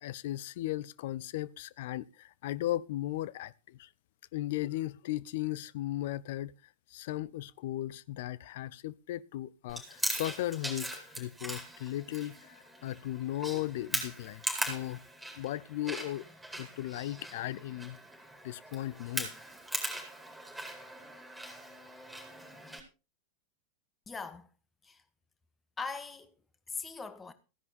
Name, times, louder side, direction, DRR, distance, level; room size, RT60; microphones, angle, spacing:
voice 1, 0.0-3.9 4.3-6.5 6.9-15.0 15.4-16.2 16.6-18.0 18.4-19.3, left 15 dB, 55° left, 0.6 m, -36 dB
Chewing mastication, 9.7-22.8, right 1 dB, 5° right, 4.5 m, -40 dB
voice 2, 24.1-24.5 24.8-25.0 25.8-26.3 26.7-27.3, left 4 dB, 15° left, 1.7 m, -40 dB
15.5 x 10.5 x 4.3 m
figure-of-eight pair, 90°, 0 cm